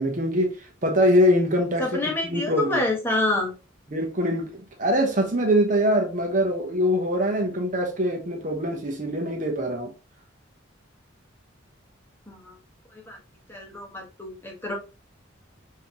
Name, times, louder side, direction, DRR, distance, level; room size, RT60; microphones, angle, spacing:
voice 1, 0.0-2.8 3.9-9.9, equal, 40° right, 0.8 m, -23 dB
voice 2, 1.8-3.5 12.3-12.5 13.1-13.2 13.5-14.7, left 2 dB, 10° left, 1.1 m, -27 dB
5.6 x 2.8 x 2.8 m
head